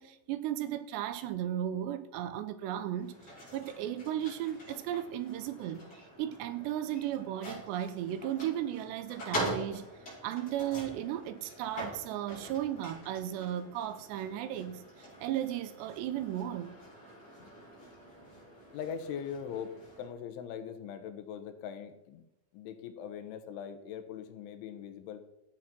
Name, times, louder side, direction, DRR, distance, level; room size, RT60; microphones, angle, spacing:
voice 1, 0.0-3.1 3.5-5.9 6.2-9.9 10.2-16.8, right 11 dB, 80° right, 2.7 m, -35 dB
sound 1, 2.9-20.1, equal, 20° left, 5.7 m, -44 dB
voice 2, 18.7-22.2 22.5-25.2, left 8 dB, 80° left, 3.6 m, -41 dB
13.0 x 8.5 x 6.1 m
omnidirectional pair, 5.4 m